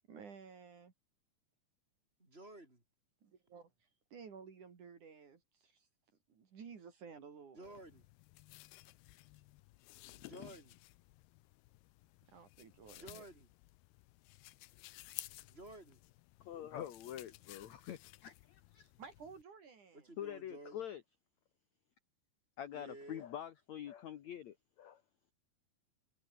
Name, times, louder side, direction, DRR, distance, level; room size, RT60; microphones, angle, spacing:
voice 1, 0.1-0.9 3.2-5.9 6.3-7.8 12.2-13.2 19.0-20.1, right 6 dB, 50° right, 4.1 m, -54 dB
voice 2, 2.2-2.8 7.6-8.0 10.1-10.8 12.9-13.5 15.5-16.0 19.9-20.8 22.7-23.2, right 1 dB, 15° right, 5.9 m, -53 dB
sound 1, 7.6-19.4, left 19 dB, 80° left, 2.8 m, -55 dB
voice 3, 16.4-18.9 20.2-21.0 22.6-25.0, left 10 dB, 60° left, 1.9 m, -46 dB
omnidirectional pair, 4.6 m